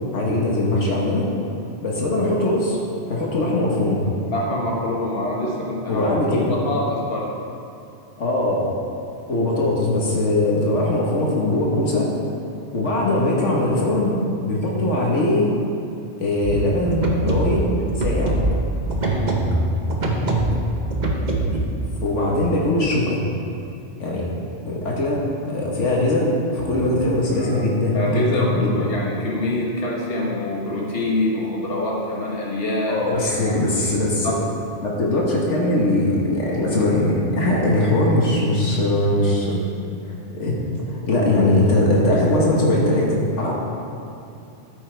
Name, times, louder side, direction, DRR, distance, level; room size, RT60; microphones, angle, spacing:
voice 1, 0.1-1.2 1.8-2.8 3.1-4.0 5.9-6.5 8.2-8.6 9.3-12.1 12.7-14.2 14.4-15.5 16.2-18.4 22.0-23.2 24.0-24.3 24.6-28.9 32.9-34.3 34.8-39.6 40.3-40.5 40.9-43.5, left 1 dB, 80° left, -3 dB, 1.7 m, -21 dB
voice 2, 4.3-7.3 19.0-19.4 27.2-27.6 27.9-34.3, left 1 dB, 55° left, -4 dB, 1.8 m, -26 dB
sound 1, 16.4-21.7, right 1 dB, 40° right, 1.1 m, -23 dB
14.0 x 8.3 x 3.4 m, 2.7 s
omnidirectional pair, 1.2 m